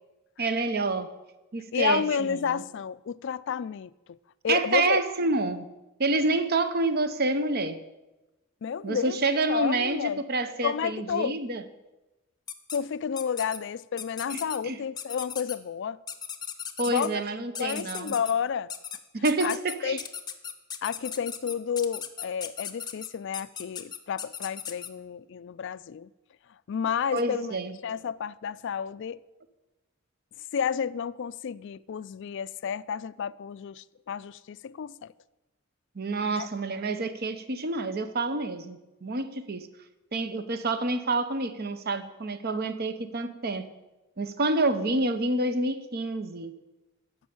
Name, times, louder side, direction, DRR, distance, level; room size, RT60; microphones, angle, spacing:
voice 1, 0.4-1.1 1.5-2.6 4.5-5.7 6.0-7.8 8.8-11.6 14.3-14.8 16.8-18.1 19.1-20.0 27.1-27.7 35.9-39.7 40.1-43.7 44.2-46.5, right 2 dB, 50° right, 0.8 m, -28 dB
voice 2, 1.7-4.2 4.4-5.0 8.6-9.2 9.5-10.2 10.6-11.4 12.7-16.0 16.9-17.2 17.6-18.7 19.4-20.0 20.8-26.1 26.7-27.6 27.8-29.2 30.5-35.1 36.2-36.5, left 7 dB, 60° left, 0.3 m, -31 dB
sound 1, 12.5-12.8 13.2-13.6 14.0-14.6 15.0-15.6 16.1-17.1 17.6-18.3 18.7-19.0 19.2-24.9, left 8 dB, 20° left, 0.7 m, -37 dB
13.5 x 5.4 x 8.6 m
head